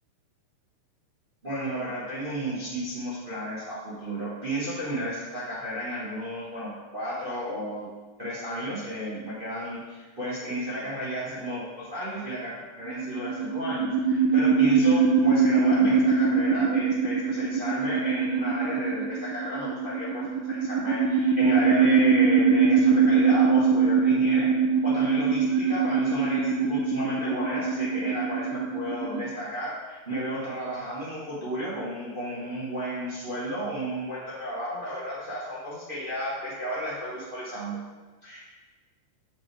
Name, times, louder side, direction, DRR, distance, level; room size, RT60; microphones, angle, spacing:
voice 1, 1.4-7.9 8.2-24.5 24.8-37.8 38.2-38.4, equal, 55° right, -9 dB, 0.5 m, -33 dB
sound 1, 12.9-29.2, right 5 dB, 80° right, 2.1 m, -23 dB
7.2 x 6.2 x 3.3 m, 1.3 s
omnidirectional pair, 3.6 m